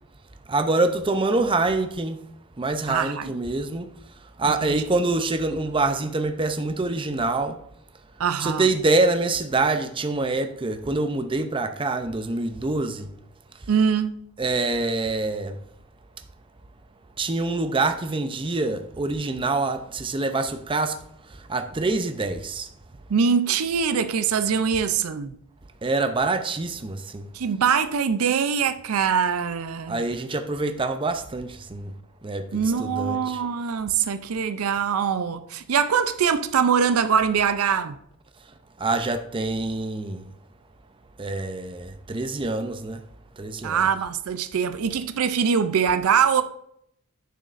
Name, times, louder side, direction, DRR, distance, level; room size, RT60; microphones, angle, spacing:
voice 1, 0.5-2.2 2.6-3.9 4.4-7.6 8.4-13.1 14.4-15.6 17.2-21.0 21.5-22.7 25.8-27.3 29.9-31.9 32.2-33.4 38.8-40.3 41.2-43.0 43.4-43.9, right 3 dB, 25° right, 0.5 m, -25 dB
voice 2, 2.9-3.3 4.4-4.9 8.2-8.7 13.7-14.2 23.1-25.4 27.3-30.0 32.5-38.0 43.6-46.4, right 7 dB, 80° right, 0.5 m, -23 dB
9.2 x 6.3 x 2.5 m
head